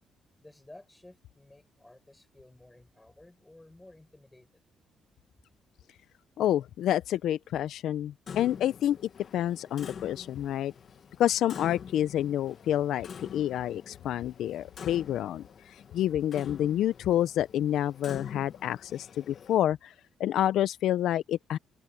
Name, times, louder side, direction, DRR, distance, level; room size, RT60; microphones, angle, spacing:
voice 1, 0.4-4.6, left 2 dB, 10° left, 5.6 m, -54 dB
voice 2, 6.4-9.0 9.3-10.7 11.2-19.9 20.2-21.6, left 11 dB, 80° left, 0.5 m, -28 dB
Clock, 8.3-19.6, left 7 dB, 55° left, 1.0 m, -46 dB
open air
cardioid pair, 90°, 0 cm